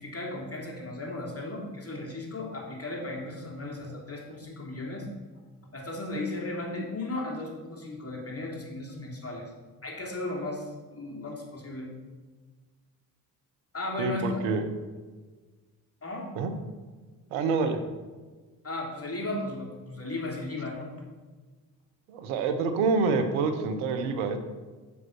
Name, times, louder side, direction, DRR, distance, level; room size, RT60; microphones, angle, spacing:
voice 1, 0.0-5.1 5.7-9.5 9.8-11.9 13.7-14.4 16.0-16.3 18.6-20.9, left 2 dB, 30° left, -2 dB, 3.0 m, -35 dB
voice 2, 14.0-14.6 16.4-16.5 17.3-17.8 22.1-24.4, right 4 dB, 85° right, 8 dB, 0.9 m, -27 dB
7.3 x 5.7 x 6.1 m, 1.4 s
hypercardioid pair, 40°, 48 cm